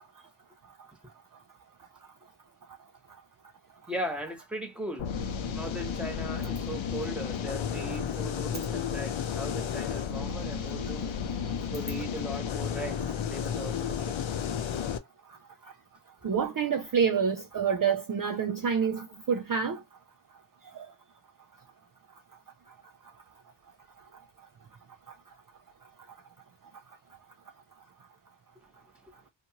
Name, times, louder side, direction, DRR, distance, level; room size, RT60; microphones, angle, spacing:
voice 1, 3.9-5.1 5.5-11.1 11.7-14.3, right 1 dB, ahead, 1.2 m, -38 dB
sound 1, 5.0-15.0, left 7 dB, 80° left, 0.6 m, -32 dB
voice 2, 16.2-19.8 20.7-20.9, right 6 dB, 45° right, 0.5 m, -27 dB
2.6 x 2.5 x 2.8 m
wide cardioid pair, 50°, 47 cm